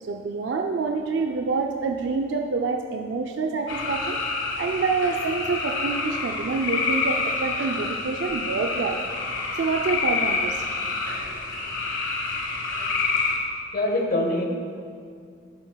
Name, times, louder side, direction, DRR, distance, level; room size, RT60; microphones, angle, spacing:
voice 1, 0.0-4.2 4.6-9.0 9.5-10.7, right 4 dB, 65° right, 3 dB, 0.4 m, -27 dB
sound 1, 3.7-13.4, left 4 dB, 85° left, 1.3 m, -28 dB
voice 2, 13.7-14.5, left 1 dB, 50° left, 3 dB, 0.9 m, -23 dB
11.0 x 8.7 x 2.3 m, 2.3 s
head